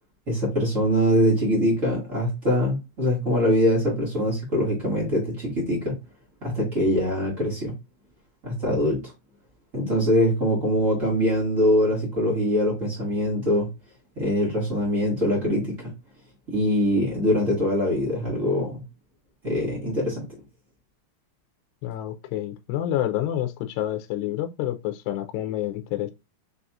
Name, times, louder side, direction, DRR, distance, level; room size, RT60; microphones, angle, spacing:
voice 1, 0.3-6.0 6.4-7.7 8.4-9.0 9.7-13.7 14.1-15.9 16.5-18.8 19.4-20.3, equal, 55° right, 0.8 m, -23 dB
voice 2, 21.8-26.1, left 12 dB, 85° left, 2.6 m, -28 dB
6.5 x 2.8 x 2.4 m
omnidirectional pair, 5.1 m